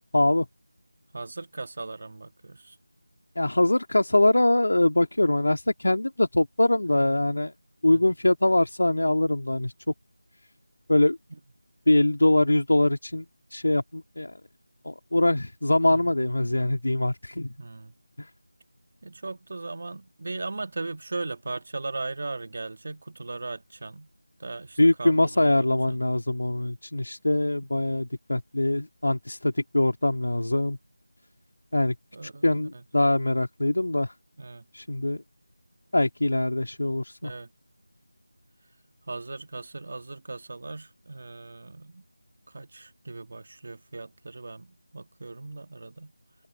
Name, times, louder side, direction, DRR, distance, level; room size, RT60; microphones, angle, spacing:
voice 1, 0.1-0.5 3.4-7.5 7.8-9.7 10.9-11.2 11.9-13.3 13.5-14.3 14.8-17.5 18.2-18.3 24.8-30.8 31.7-32.0 32.2-34.1 34.7-35.2 35.9-37.3, left 1 dB, 80° left, 2.6 m, -23 dB
voice 2, 1.1-2.8 7.9-8.0 15.9-16.0 17.6-17.9 19.0-24.1 24.4-25.6 32.1-32.6 34.4-34.6 37.2-37.5 39.1-42.0 42.5-46.1, right 3 dB, 45° right, 1.6 m, -38 dB
open air
figure-of-eight pair, 170°, 0 cm